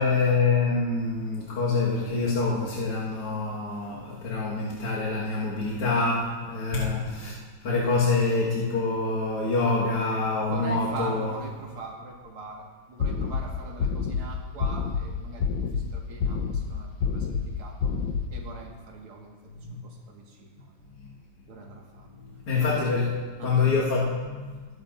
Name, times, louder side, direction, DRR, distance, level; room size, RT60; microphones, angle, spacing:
voice 1, 0.0-7.3 7.6-11.3 19.6-19.8 22.1-23.1 23.4-24.6, left 3 dB, 90° left, -7 dB, 2.7 m, -26 dB
voice 2, 10.4-17.9 18.3-19.4 19.7-20.9 21.5-22.2 22.5-22.9 23.4-23.6, right 3 dB, 85° right, -1 dB, 2.7 m, -42 dB
sound 1, 13.0-13.4 13.8-14.2 14.6-15.0 15.4-15.8 16.2-16.6 17.0-17.4 17.8-18.2, left 6 dB, 65° left, 1.5 m, -27 dB
21.0 x 11.0 x 2.6 m, 1.4 s
omnidirectional pair, 2.4 m